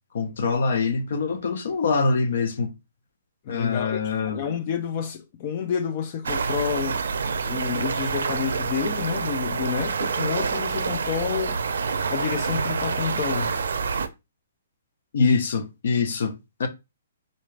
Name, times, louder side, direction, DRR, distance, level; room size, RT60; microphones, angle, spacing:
voice 1, 0.1-2.7 3.5-4.4 15.1-16.7, left 4 dB, 50° left, 0.7 m, -24 dB
voice 2, 3.5-7.0 7.4-11.6 12.1-13.6, left 8 dB, 25° left, 0.3 m, -29 dB
sound 1, 6.2-14.1, right 5 dB, 85° right, 0.5 m, -27 dB
3.9 x 2.4 x 3.2 m
hypercardioid pair, 180°, 0 cm